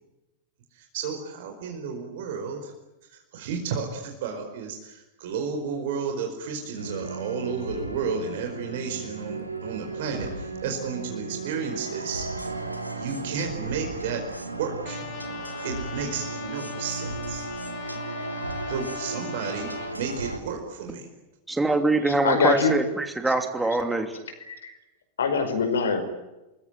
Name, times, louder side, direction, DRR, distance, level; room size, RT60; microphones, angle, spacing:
voice 1, 0.7-2.7 3.1-12.3 13.0-14.2 14.6-15.1 15.6-17.4 17.9-18.0 18.7-21.1, right 6 dB, 55° right, 3 dB, 4.7 m, -32 dB
sound 1, 6.8-20.4, right 3 dB, 85° right, 3.2 m, -35 dB
Trumpet, 14.8-19.9, left 10 dB, 40° left, 3.7 m, -40 dB
voice 2, 21.5-24.2, right 2 dB, 10° right, 6 dB, 2.9 m, -24 dB
voice 3, 22.1-22.7 24.5-24.7 25.2-26.0, left 5 dB, 65° left, 8 dB, 5.2 m, -23 dB
28.5 x 21.5 x 9.2 m, 1.0 s
figure-of-eight pair, 90°, 0 cm